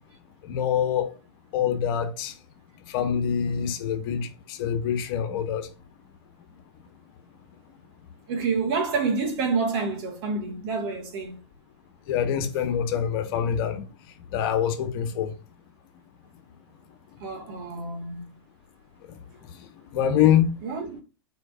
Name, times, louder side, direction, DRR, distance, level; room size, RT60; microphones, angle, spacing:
voice 1, 0.4-1.1 1.5-2.3 2.9-5.7 12.1-13.9 14.3-15.3 19.1-19.2 19.9-20.5, left 9 dB, 50° left, 1.5 m, -25 dB
voice 2, 8.3-11.4 17.2-18.2 20.6-21.0, right 4 dB, 50° right, 2.5 m, -28 dB
9.0 x 4.6 x 2.8 m
hypercardioid pair, 125°, 15 cm